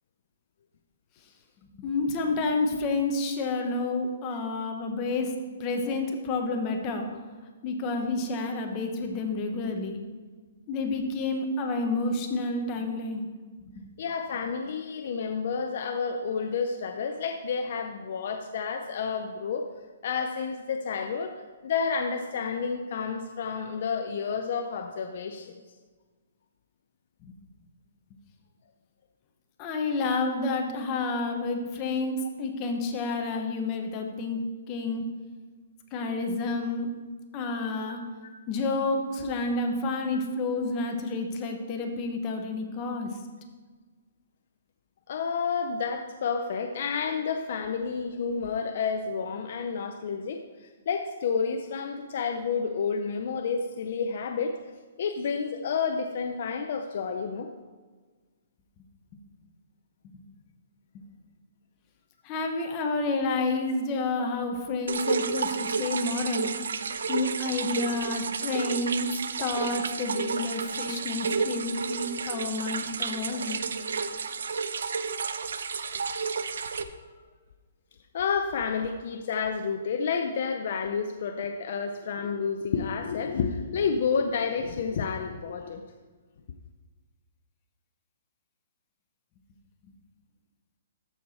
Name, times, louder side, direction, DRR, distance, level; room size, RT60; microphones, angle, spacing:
voice 1, 1.8-5.3 5.6-7.2 7.6-10.0 10.7-13.2 13.6-13.8 27.2-27.4 29.6-34.4 34.7-35.1 35.9-36.9 37.3-38.0 38.5-43.1 60.9-61.0 62.2-66.5 67.1-69.1 69.4-73.6, left 3 dB, 25° left, 4 dB, 1.0 m, -29 dB
voice 2, 14.0-19.7 20.0-21.4 21.6-25.5 45.1-54.6 55.0-57.5 78.1-85.8, left 5 dB, 55° left, 5 dB, 0.6 m, -30 dB
sound 1, 64.9-76.8, right 5 dB, 80° right, 0.5 m, -31 dB
13.5 x 4.7 x 4.2 m, 1.4 s
hypercardioid pair, 160°, 0 cm